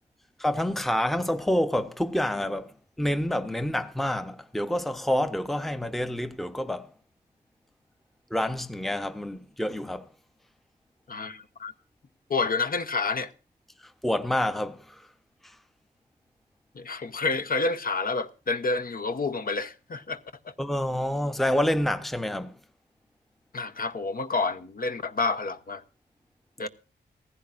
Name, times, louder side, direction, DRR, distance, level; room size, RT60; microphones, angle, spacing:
voice 1, 0.4-6.9 8.3-10.1 14.0-15.0 20.6-22.5, left 1 dB, ahead, 0.8 m, -28 dB
voice 2, 11.1-11.7 12.3-13.3 16.7-20.2 20.4-20.5 23.5-25.8 26.6-26.7, left 3 dB, 50° left, 0.9 m, -29 dB
16.5 x 15.0 x 2.5 m
wide cardioid pair, 115°, 19 cm